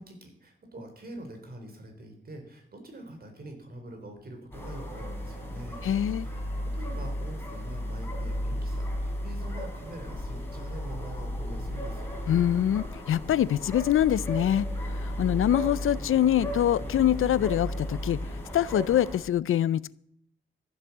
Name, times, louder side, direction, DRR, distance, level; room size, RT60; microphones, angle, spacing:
voice 1, 0.0-5.8 6.1-12.1, right 1 dB, 45° right, 4 dB, 3.9 m, -44 dB
sound 1, 4.5-19.2, equal, 10° left, 3.4 m, -34 dB
voice 2, 5.8-6.3 12.3-14.7 15.0-18.2 18.5-19.9, left 11 dB, 85° left, 20 dB, 0.5 m, -24 dB
14.0 x 8.1 x 7.1 m, 0.69 s
wide cardioid pair, 140°, 21 cm